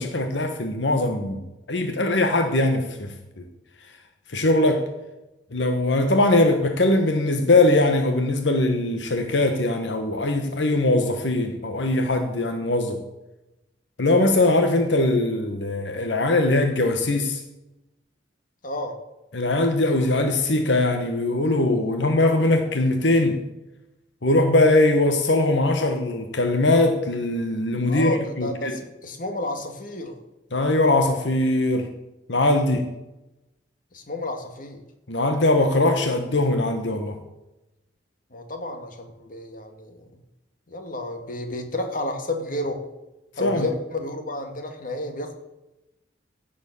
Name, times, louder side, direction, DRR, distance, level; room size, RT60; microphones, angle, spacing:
voice 1, 0.0-3.4 4.3-4.9 5.5-13.0 14.0-17.4 19.3-23.4 24.2-28.8 30.5-31.9 32.3-32.9 35.1-37.2 43.4-43.7, left 2 dB, 80° left, 1.3 m, -21 dB
voice 2, 18.6-19.0 27.9-30.2 33.9-34.8 38.3-40.2 40.7-42.9 43.4-45.3, left 2 dB, 50° left, 2.0 m, -31 dB
15.5 x 7.3 x 6.9 m
head